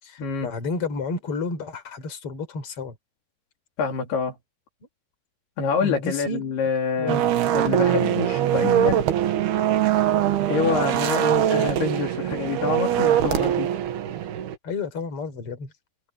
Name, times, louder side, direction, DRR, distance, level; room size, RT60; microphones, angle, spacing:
voice 1, 0.0-2.9 5.8-6.4 7.0-7.2 14.6-15.7, left 4 dB, 35° left, 4.8 m, -31 dB
voice 2, 3.8-4.4 5.6-7.2 7.5-9.0 10.5-13.7, left 5 dB, 70° left, 5.2 m, -26 dB
sound 1, 7.1-14.6, right 11 dB, 75° right, 3.4 m, -22 dB
omnidirectional pair, 4.7 m